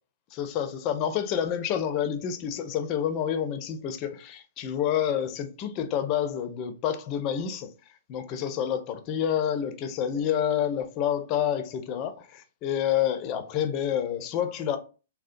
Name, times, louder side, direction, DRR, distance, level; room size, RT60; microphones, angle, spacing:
voice 1, 0.4-7.7 8.1-14.8, left 9 dB, 35° left, 0.4 m, -28 dB
2.7 x 2.0 x 2.5 m
figure-of-eight pair, 115°, 0 cm